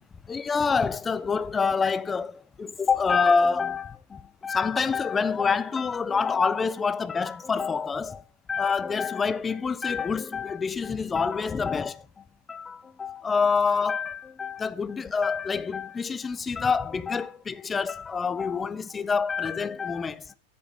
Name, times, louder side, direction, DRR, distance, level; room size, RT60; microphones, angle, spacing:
voice 1, 0.3-8.2 8.5-12.1 12.5-20.3, left 5 dB, 15° left, 0.4 m, -27 dB
7.7 x 5.0 x 6.9 m
figure-of-eight pair, 90°, 0 cm